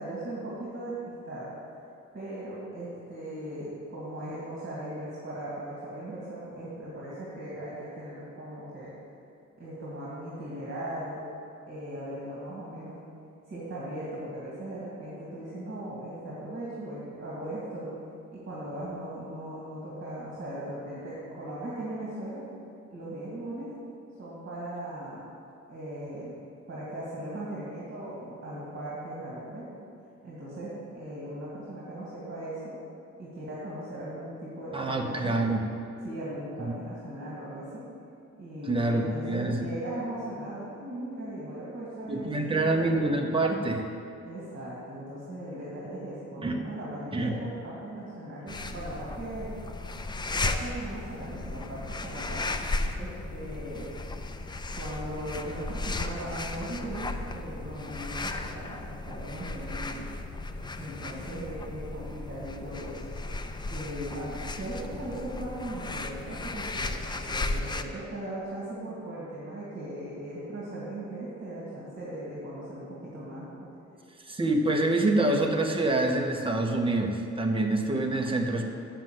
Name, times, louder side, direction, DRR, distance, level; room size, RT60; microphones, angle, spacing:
voice 1, 0.0-1.5 2.1-8.9 9.6-11.2 11.7-13.0 13.5-17.9 18.3-22.4 22.9-23.7 24.2-25.2 25.7-26.4 26.7-29.8 30.2-32.7 33.2-35.4 36.0-37.8 38.4-43.0 44.2-49.5 50.4-52.4 53.0-53.9 54.7-60.1 60.7-63.0 63.7-73.7, right 1 dB, 40° right, -8 dB, 2.5 m, -38 dB
voice 2, 34.7-35.7 36.6-36.7 38.6-39.6 42.1-43.8 46.4-46.6 47.1-47.3 74.2-78.6, right 2 dB, 20° right, 2 dB, 0.8 m, -26 dB
sound 1, 48.5-67.8, left 2 dB, 15° left, 0.3 m, -35 dB
7.6 x 6.9 x 7.6 m, 2.5 s
wide cardioid pair, 170°, 30 cm